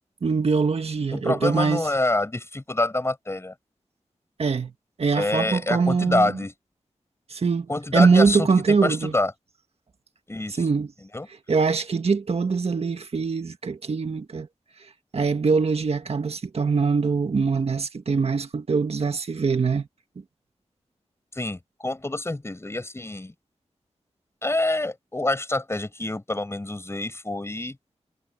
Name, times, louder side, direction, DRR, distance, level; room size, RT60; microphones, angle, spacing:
voice 1, 0.2-1.8 4.4-4.7 5.0-6.4 7.3-9.1 10.5-10.9 11.5-14.5 15.1-19.9 20.2-20.3, right 5 dB, 60° right, 1.7 m, -23 dB
voice 2, 1.1-3.5 5.1-6.5 7.7-9.3 10.3-10.6 11.1-11.3 21.3-23.3 24.4-27.8, left 2 dB, 20° left, 5.6 m, -26 dB
wide cardioid pair, 125°, 12 cm